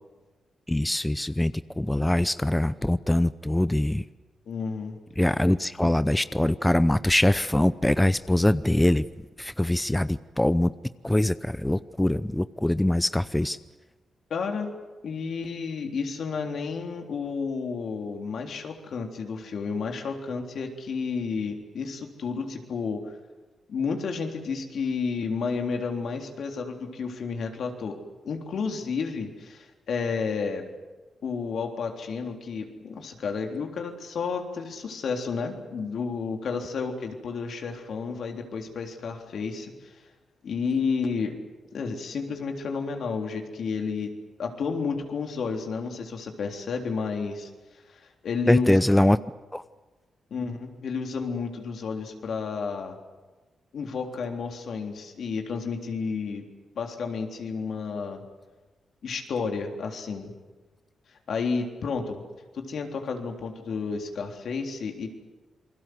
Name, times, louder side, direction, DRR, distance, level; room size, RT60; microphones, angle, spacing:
voice 1, 0.7-4.0 5.2-9.0 9.4-10.7 11.0-13.6 48.5-49.2 49.5-49.6, left 1 dB, 10° left, 14 dB, 0.7 m, -23 dB
voice 2, 4.5-5.0 14.3-14.7 15.0-23.1 23.7-28.0 28.2-30.6 31.2-40.0 40.4-41.4 41.7-44.1 44.4-47.5 47.9-48.8 50.3-53.0 53.7-56.4 56.8-58.2 59.0-60.3 61.3-62.2 62.5-65.1, left 5 dB, 70° left, 3 dB, 3.6 m, -31 dB
28.0 x 21.0 x 7.9 m, 1.2 s
cardioid pair, 55°, 0 cm